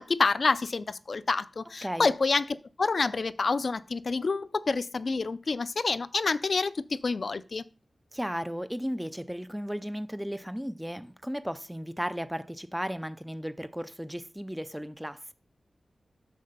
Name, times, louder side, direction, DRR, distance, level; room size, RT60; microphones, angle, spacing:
voice 1, 0.0-7.6, left 4 dB, 55° left, 0.5 m, -28 dB
voice 2, 8.1-15.3, equal, 5° right, 0.5 m, -35 dB
9.4 x 4.3 x 6.7 m
wide cardioid pair, 125°, 0 cm